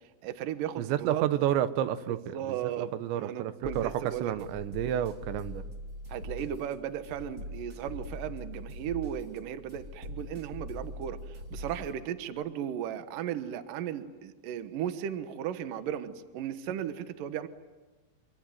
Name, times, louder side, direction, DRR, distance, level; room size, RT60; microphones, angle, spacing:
voice 1, 0.2-1.2 2.3-4.3 6.1-11.2 11.5-17.5, right 10 dB, 65° right, 10 dB, 2.5 m, -36 dB
voice 2, 0.8-5.6, right 11 dB, 90° right, 12 dB, 3.3 m, -30 dB
sound 1, 3.6-11.9, left 1 dB, 25° right, 2.7 m, -42 dB
26.0 x 25.0 x 9.3 m, 1.2 s
omnidirectional pair, 5.0 m